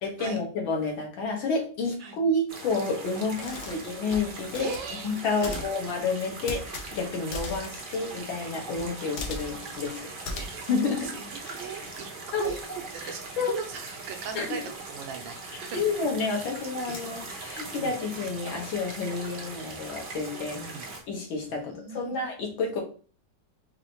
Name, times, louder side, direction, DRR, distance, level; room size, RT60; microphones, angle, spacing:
voice 1, 0.0-4.7 5.0-6.6 6.9-10.4 10.7-11.1 12.3-12.5 13.0-13.6 14.4-14.6 15.7-20.6 21.1-22.8, left 3 dB, 85° left, 0 dB, 2.0 m, -30 dB
sound 1, 2.5-21.0, right 3 dB, 70° right, 0.5 m, -41 dB
sound 2, 3.3-13.3 13.6-21.1, left 3 dB, 65° left, 1.1 m, -43 dB
voice 2, 4.6-5.1 5.4-5.6 10.4-10.6 11.1-12.1 12.4-13.2 13.5-15.8 17.8-18.0 20.5-20.9 21.5-22.2, right 7 dB, 85° right, 5 dB, 1.5 m, -38 dB
4.9 x 2.7 x 2.9 m, 0.39 s
omnidirectional pair, 2.1 m